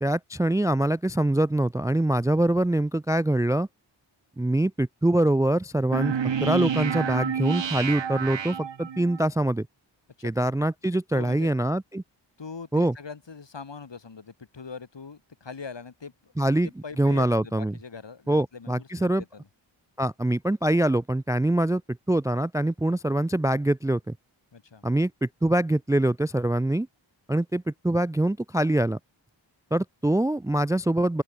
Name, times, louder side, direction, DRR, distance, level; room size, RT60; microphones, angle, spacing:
voice 1, 0.0-3.7 4.4-6.2 6.4-9.7 10.2-12.0 12.7-12.9 16.4-16.7 17.0-17.7 18.3-19.2 20.0-21.8 22.1-24.0 24.8-26.9 27.3-29.0 29.7-31.2, right 1 dB, 5° right, 0.4 m, -24 dB
sound 1, 5.9-9.2, right 7 dB, 65° right, 1.2 m, -29 dB
voice 2, 10.9-11.5 12.4-16.3 16.6-19.5 24.5-24.8, left 5 dB, 60° left, 3.3 m, -42 dB
open air
cardioid pair, 40°, 48 cm